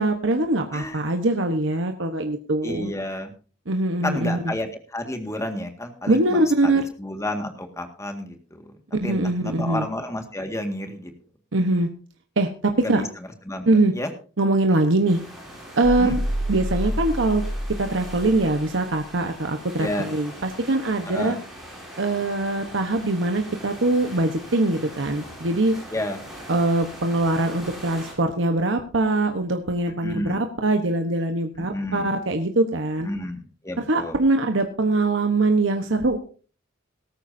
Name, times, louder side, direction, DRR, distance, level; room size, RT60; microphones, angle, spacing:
voice 1, 0.0-2.9 3.7-4.4 6.1-6.8 9.0-9.9 11.5-11.9 12.4-13.0 13.7-13.9 14.4-15.2 15.8-16.2 16.5-17.4 17.8-21.4 22.0-25.8 26.5-33.1 33.9-36.2, right 2 dB, 65° right, 5 dB, 1.2 m, -22 dB
voice 2, 0.7-1.1 2.6-3.3 4.0-8.7 9.0-11.1 12.8-14.1 16.0-16.2 19.8-20.1 21.1-21.4 25.9-26.2 30.0-30.5 31.6-32.1 33.0-34.2, left 1 dB, 15° left, 5 dB, 1.9 m, -31 dB
sound 1, 15.1-28.1, equal, ahead, 6.4 m, -42 dB
sound 2, 15.8-18.5, equal, 90° right, 3.2 m, -28 dB
18.0 x 14.0 x 2.7 m, 0.39 s
head